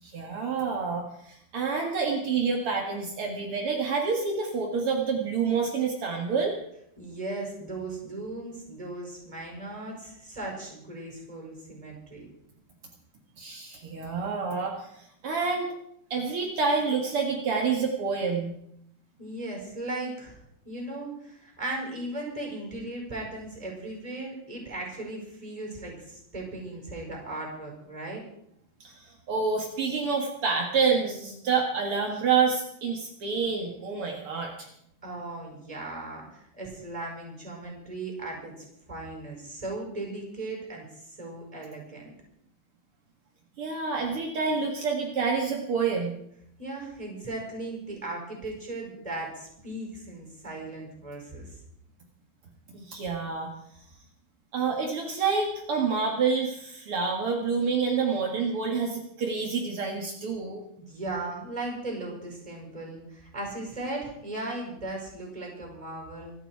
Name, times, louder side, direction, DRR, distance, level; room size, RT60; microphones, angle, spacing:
voice 1, 0.0-6.5 13.4-15.7 16.1-18.5 28.8-34.7 43.6-46.2 52.7-53.5 54.5-60.6, right 5 dB, 65° right, 0 dB, 1.4 m, -28 dB
voice 2, 7.0-12.3 19.2-28.2 35.0-42.1 46.6-51.5 60.8-66.3, right 2 dB, 10° right, 0 dB, 4.8 m, -37 dB
26.0 x 9.2 x 4.7 m, 0.75 s
omnidirectional pair, 5.2 m